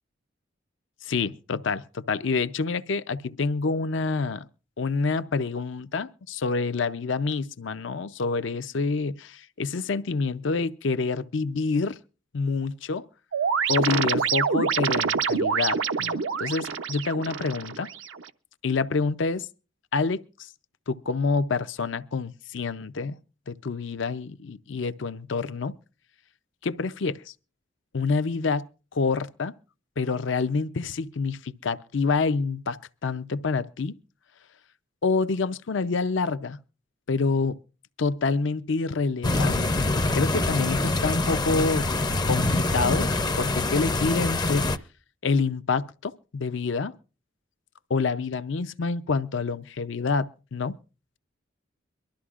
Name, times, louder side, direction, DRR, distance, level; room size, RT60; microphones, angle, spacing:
voice 1, 1.0-4.5 4.8-12.0 12.3-13.1 13.7-17.9 18.6-19.5 19.9-20.5 20.9-23.2 23.5-25.8 26.6-27.3 27.9-28.6 28.9-29.5 30.0-34.0 35.0-36.6 37.1-37.6 38.0-39.7 40.1-42.0 42.3-43.1 43.4-44.7 45.2-46.9 47.9-50.8, left 4 dB, 70° left, 0.6 m, -27 dB
sound 1, 13.3-18.3, right 6 dB, 80° right, 0.6 m, -26 dB
sound 2, 39.2-44.8, left 2 dB, 20° left, 0.5 m, -25 dB
23.5 x 13.0 x 2.4 m
head